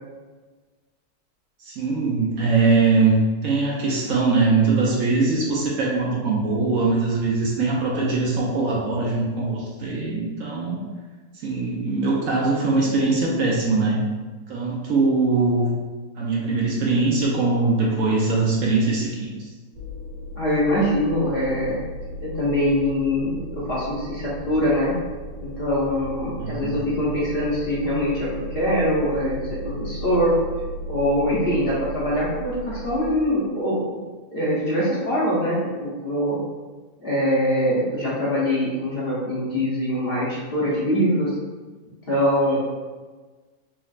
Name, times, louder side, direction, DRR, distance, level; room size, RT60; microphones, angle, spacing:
voice 1, 1.6-10.8 11.3-14.0 14.5-15.7 16.2-19.5 26.4-26.8, right 3 dB, 65° right, -3 dB, 0.9 m, -22 dB
sound 1, 19.7-33.1, equal, 35° right, 0.9 m, -35 dB
voice 2, 20.4-21.8 22.2-24.9 25.4-30.3 30.9-34.0 34.3-36.4 37.0-41.3 42.1-42.6, equal, 45° left, -8 dB, 0.9 m, -23 dB
3.9 x 3.0 x 2.4 m, 1.3 s
omnidirectional pair, 1.7 m